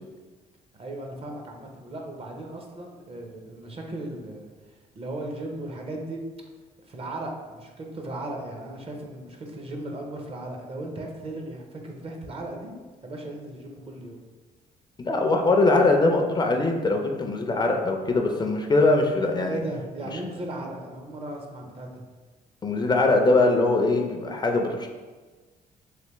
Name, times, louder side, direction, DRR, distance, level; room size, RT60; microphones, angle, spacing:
voice 1, 0.7-4.5 4.9-6.2 6.8-12.7 13.0-14.2 19.5-22.0, right 1 dB, 40° right, 2 dB, 0.6 m, -36 dB
voice 2, 15.0-19.6 22.6-24.9, left 2 dB, 30° left, 2 dB, 0.4 m, -22 dB
3.3 x 2.9 x 3.0 m, 1.3 s
cardioid pair, 80°, 16 cm